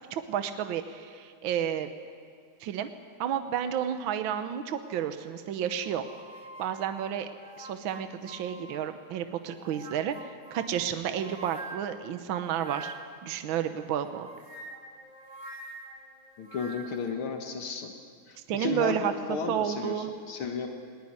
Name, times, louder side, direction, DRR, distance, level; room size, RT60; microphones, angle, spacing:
voice 1, 0.1-1.9 2.6-2.9 3.2-6.0 6.6-12.9 13.2-14.3 18.5-20.1, right 9 dB, 70° right, 8 dB, 1.6 m, -31 dB
sound 1, 5.8-9.1 9.5-13.3 14.1-17.1, right 2 dB, 25° right, 1.6 m, -46 dB
voice 2, 16.4-17.9 18.3-20.7, left 5 dB, 80° left, 4 dB, 2.2 m, -34 dB
19.5 x 19.0 x 9.6 m, 2.1 s
omnidirectional pair, 2.3 m